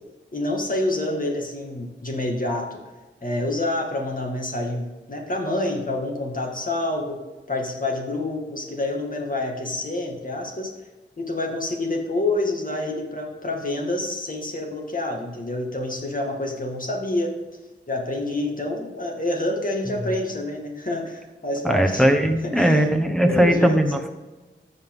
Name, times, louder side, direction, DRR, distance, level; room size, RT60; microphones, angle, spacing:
voice 1, 0.3-2.8 3.2-7.2 7.5-10.7 11.2-17.3 17.9-22.1 22.5-22.9 23.2-23.8, left 2 dB, 40° left, 1 dB, 2.0 m, -27 dB
voice 2, 21.6-24.1, right 1 dB, ahead, 3 dB, 1.1 m, -19 dB
14.0 x 5.6 x 3.7 m, 1.2 s
wide cardioid pair, 70°, 21 cm